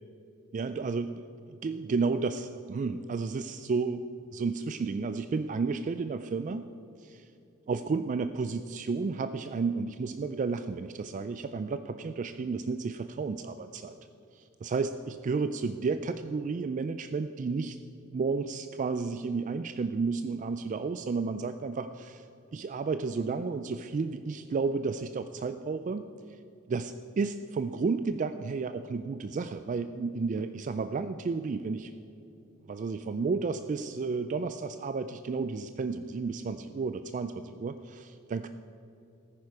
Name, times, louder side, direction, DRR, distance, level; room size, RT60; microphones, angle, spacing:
voice 1, 0.5-6.7 7.0-7.3 7.7-14.0 14.3-17.8 18.1-22.3 22.5-26.1 26.7-31.9 32.7-38.5, right 4 dB, 35° right, 10 dB, 0.3 m, -32 dB
14.0 x 9.9 x 4.7 m, 2.8 s
head